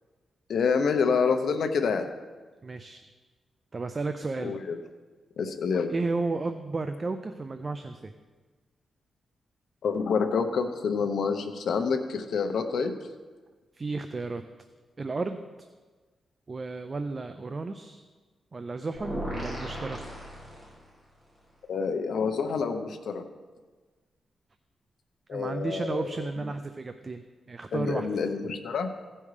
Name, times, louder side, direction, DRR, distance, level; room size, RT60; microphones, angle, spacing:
voice 1, 0.5-2.1 4.4-4.8 5.4-5.9 9.8-12.9 21.7-23.2 25.3-26.1 27.7-28.9, left 5 dB, 70° left, 6 dB, 0.9 m, -27 dB
voice 2, 2.6-3.0 3.7-4.6 5.9-8.1 13.7-14.4 15.0-15.4 16.5-18.0 18.5-20.0 25.3-27.2 27.5-28.1, right 3 dB, 30° right, 8 dB, 0.5 m, -33 dB
sound 1, 18.9-21.1, equal, 10° right, 3.2 m, -36 dB
16.0 x 5.4 x 4.9 m, 1.4 s
wide cardioid pair, 130°, 0 cm